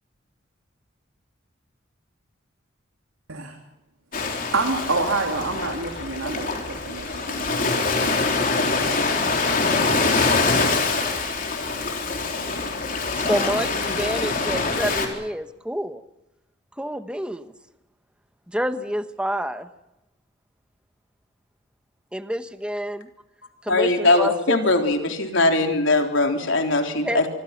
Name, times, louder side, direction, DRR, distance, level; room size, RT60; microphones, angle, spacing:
Ocean, 4.1-15.1, left 3 dB, 40° left, 3.9 m, -24 dB
voice 1, 4.5-8.1, right 3 dB, 90° right, 3 dB, 3.2 m, -28 dB
voice 2, 13.2-16.0 16.8-17.5 18.5-19.7 22.1-23.1 23.6-24.6 27.0-27.2, equal, 5° right, 10 dB, 1.1 m, -28 dB
voice 3, 23.7-27.3, left 2 dB, 70° left, 4 dB, 3.8 m, -20 dB
26.0 x 24.5 x 6.0 m, 0.91 s
head